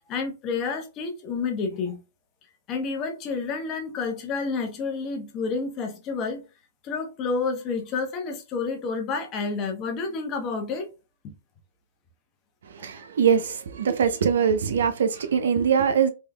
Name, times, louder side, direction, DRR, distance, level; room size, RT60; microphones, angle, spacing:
voice 1, 0.0-2.0 2.7-6.4 6.8-10.9 11.2-11.3 12.8-12.9, left 4 dB, 30° left, 0.9 m, -29 dB
voice 2, 12.8-16.1, right 7 dB, 80° right, 0.6 m, -22 dB
3.6 x 3.1 x 2.2 m
hypercardioid pair, 145°, 0 cm